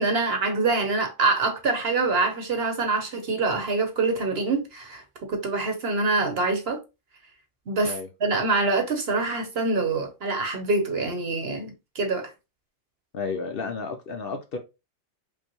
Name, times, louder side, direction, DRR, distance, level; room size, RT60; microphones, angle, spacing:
voice 1, 0.0-5.0 5.3-6.8 7.7-7.9 8.2-12.3, right 3 dB, 55° right, 1.1 m, -25 dB
voice 2, 13.1-14.6, left 4 dB, 55° left, 0.7 m, -32 dB
5.2 x 2.2 x 3.0 m
omnidirectional pair, 1.3 m